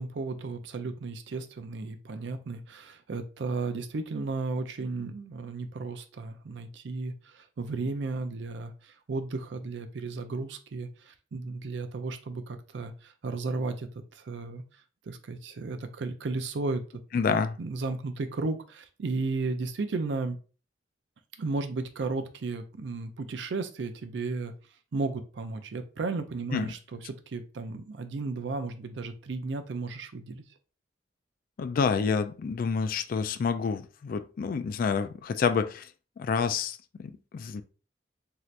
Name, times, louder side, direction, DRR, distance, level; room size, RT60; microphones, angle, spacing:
voice 1, 0.0-8.7 9.1-13.9 14.2-14.6 15.1-16.8 17.3-20.4 21.4-24.5 24.9-27.0 27.3-30.4, right 3 dB, 75° right, 0.5 m, -34 dB
voice 2, 17.1-17.6 26.5-26.7 31.6-35.9 36.2-37.6, left 5 dB, 50° left, 0.3 m, -28 dB
3.2 x 2.8 x 2.4 m
head